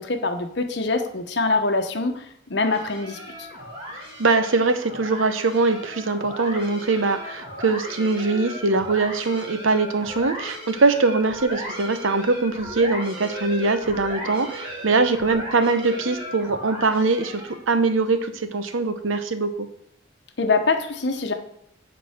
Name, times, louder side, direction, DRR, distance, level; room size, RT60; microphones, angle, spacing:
voice 1, 0.0-2.2 2.5-3.5 20.4-21.3, left 3 dB, 60° left, 6 dB, 1.0 m, -24 dB
sound 1, 2.6-17.7, equal, 25° right, 2.2 m, -36 dB
voice 2, 4.2-17.4 17.7-19.7, right 3 dB, 85° right, 10 dB, 0.9 m, -22 dB
9.7 x 4.2 x 5.8 m, 0.72 s
head